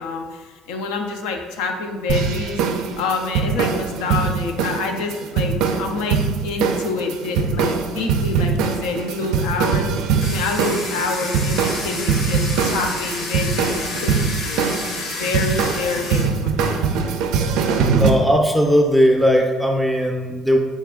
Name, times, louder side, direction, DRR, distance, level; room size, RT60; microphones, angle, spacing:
voice 1, 0.0-2.6 3.0-9.9 10.2-14.7 15.1-16.8, left 4 dB, 85° left, 3 dB, 0.5 m, -27 dB
sound 1, 2.1-18.1, right 6 dB, 75° right, 0.4 m, -22 dB
Domestic sounds home sounds, 10.2-16.2, left 3 dB, 60° left, 0.9 m, -30 dB
voice 2, 18.0-20.6, equal, ahead, 2 dB, 0.5 m, -17 dB
4.0 x 2.3 x 3.6 m, 1.3 s
supercardioid pair, 100°, 0 cm